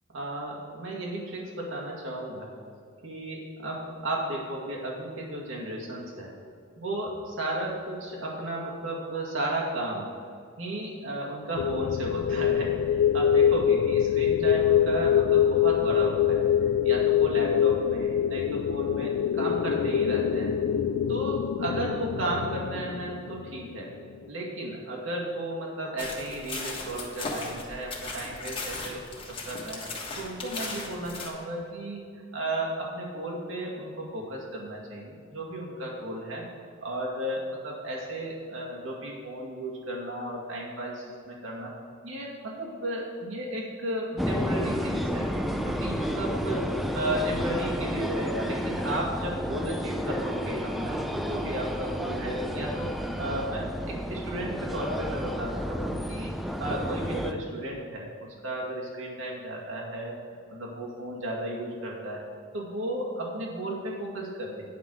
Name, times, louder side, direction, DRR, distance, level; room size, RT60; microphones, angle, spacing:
voice 1, 0.1-2.5 3.0-6.3 6.8-10.1 10.6-20.5 21.1-23.9 24.3-29.0 29.3-29.8 30.2-36.4 36.8-41.7 42.0-45.3 45.6-56.3 56.6-62.2 62.5-64.6, right 1 dB, 75° right, -3 dB, 2.1 m, -34 dB
sound 1, 11.6-23.8, left 9 dB, 85° left, 0.3 m, -24 dB
sound 2, 26.0-31.3, left 3 dB, 25° left, 1.5 m, -37 dB
sound 3, 44.2-57.3, equal, ahead, 0.5 m, -31 dB
9.5 x 5.7 x 6.3 m, 2.3 s
head